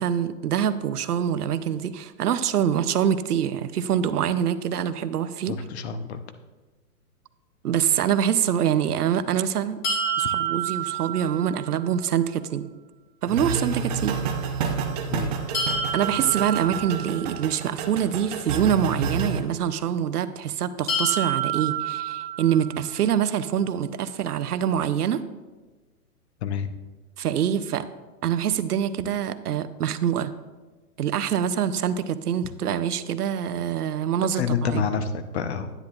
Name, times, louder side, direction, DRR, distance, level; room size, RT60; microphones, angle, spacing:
voice 1, 0.0-5.6 7.6-9.8 10.2-12.7 13.2-14.2 15.9-25.2 27.2-27.9 28.2-30.3 31.0-34.8, right 9 dB, 75° right, 12 dB, 0.7 m, -25 dB
voice 2, 5.5-6.2 15.1-15.3 26.4-26.7 34.4-35.7, left 6 dB, 45° left, 10 dB, 0.7 m, -28 dB
sound 1, 9.8-11.8 15.5-17.6 20.9-22.9, right 5 dB, 25° left, 1.3 m, -28 dB
sound 2, 13.3-19.4, right 5 dB, 25° right, 0.6 m, -29 dB
10.0 x 9.8 x 2.4 m, 1.3 s
hypercardioid pair, 135°, 46 cm